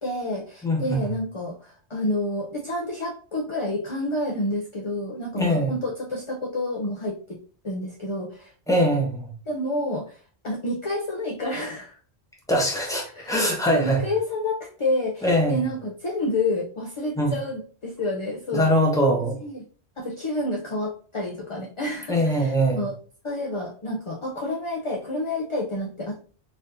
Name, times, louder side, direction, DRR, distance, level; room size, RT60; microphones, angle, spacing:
voice 1, 0.0-7.4 7.6-8.5 9.5-12.0 13.1-13.4 13.7-18.7 19.4-19.6 20.0-22.9 23.2-26.2, left 1 dB, 40° left, 0 dB, 0.5 m, -29 dB
voice 2, 0.6-1.1 5.3-5.7 8.7-9.3 12.5-14.0 15.2-15.6 17.2-17.3 18.5-19.4 22.1-22.8, equal, 5° left, -1 dB, 0.8 m, -22 dB
4.1 x 2.7 x 2.6 m, 0.40 s
omnidirectional pair, 1.1 m